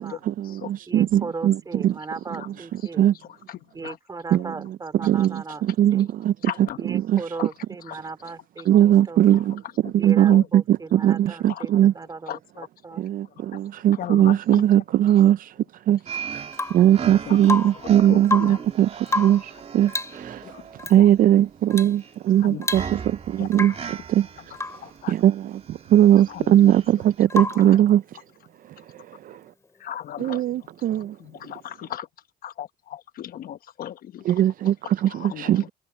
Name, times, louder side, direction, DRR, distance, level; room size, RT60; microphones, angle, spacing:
voice 1, 0.0-1.6 1.8-1.9 3.0-3.1 4.3-4.5 5.0-6.3 6.9-7.2 8.7-9.6 9.9-11.9 13.0-15.5 15.9-16.0 16.3-16.4 16.7-20.6 20.9-24.3 25.1-28.0 28.9-29.4 30.2-31.2 34.3-35.7, right 11 dB, 55° right, 0.5 m, -20 dB
voice 2, 0.9-3.1 3.7-5.7 5.9-6.1 6.8-9.3 10.0-13.0, right 4 dB, 20° right, 4.1 m, -37 dB
voice 3, 3.5-4.0 6.4-6.8 7.4-7.5 7.9-8.0 9.3-9.4 10.3-10.5 11.5-11.6 12.3-12.7 13.5-13.6 13.9-14.6 17.1-18.6 20.4-20.7 21.0-21.1 22.4-22.7 23.4-23.8 24.4-24.5 24.8-25.1 26.3-26.7 27.6-27.8 29.8-32.1 32.4-34.3 35.1-35.7, left 11 dB, 60° left, 1.0 m, -37 dB
sound 1, 16.1-27.3, right 7 dB, 40° right, 3.1 m, -38 dB
Rain / Water tap faucet / Drip, 16.5-16.9 17.4-17.9 18.2-18.7 19.1-19.5 19.9-20.2 20.8-21.0 21.7-22.0 22.3-22.4 22.6-23.2 23.5-23.9 24.5-24.9 27.3-27.7 29.6-29.7, left 3 dB, 15° left, 3.9 m, -29 dB
cardioid pair, 110°, 17 cm